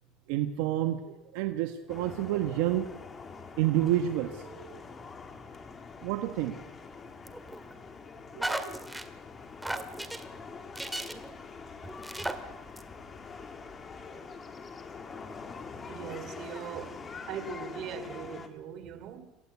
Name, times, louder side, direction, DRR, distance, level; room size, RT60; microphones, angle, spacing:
voice 1, 0.3-2.9 3.6-4.8 6.0-6.5 8.3-8.8, right 13 dB, 80° right, 1.4 m, -29 dB
sound 1, 1.9-18.5, left 5 dB, 25° left, 2.6 m, -45 dB
sound 2, 7.2-7.7 8.4-9.1 9.6-10.2 10.7-11.3 11.8-12.3 12.8-12.9, right 1 dB, 5° right, 1.9 m, -35 dB
voice 2, 15.9-17.0 17.3-19.3, right 7 dB, 50° right, 3.0 m, -40 dB
27.0 x 16.0 x 8.3 m
supercardioid pair, 125°, 0 cm